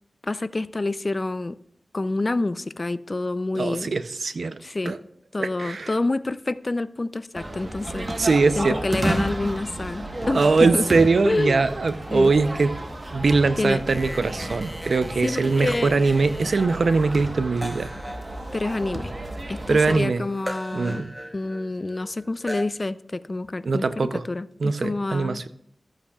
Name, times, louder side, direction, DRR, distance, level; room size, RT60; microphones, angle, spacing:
voice 1, 0.2-1.6 1.9-3.9 4.6-4.9 5.3-8.3 8.6-10.8 11.2-11.6 12.1-12.3 13.6-13.8 15.2-16.0 18.5-19.1 19.5-21.0 21.3-25.4, left 2 dB, 40° left, 15 dB, 0.4 m, -28 dB
voice 2, 3.5-4.6 4.9-5.0 5.4-5.9 8.2-8.8 10.3-12.8 13.1-17.9 19.7-20.2 20.7-21.1 23.6-24.2 24.6-25.5, right 4 dB, 70° right, 12 dB, 0.6 m, -22 dB
sound 1, 7.3-20.0, right 1 dB, 35° right, 1.2 m, -32 dB
sound 2, 13.9-22.6, equal, ahead, 0.9 m, -39 dB
14.0 x 8.5 x 2.4 m, 0.74 s
cardioid pair, 55°, 0 cm